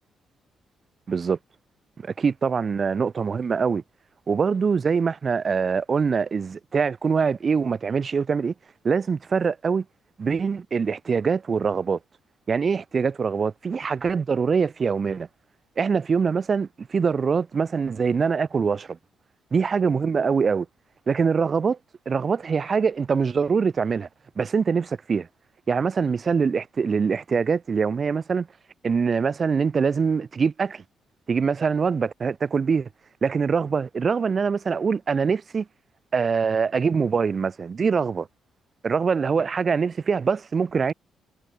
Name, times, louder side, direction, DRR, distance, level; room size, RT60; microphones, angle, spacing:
voice 1, 1.1-1.4 2.0-3.8 4.3-8.5 8.8-9.8 10.2-12.0 12.5-15.3 15.8-19.0 19.5-20.7 21.1-21.8 22.1-24.1 24.4-25.3 25.7-28.5 28.8-30.8 31.3-32.9 33.2-35.7 36.1-38.3 38.8-40.9, right 5 dB, 40° right, 2.9 m, -23 dB
cardioid pair, 90°, 0 cm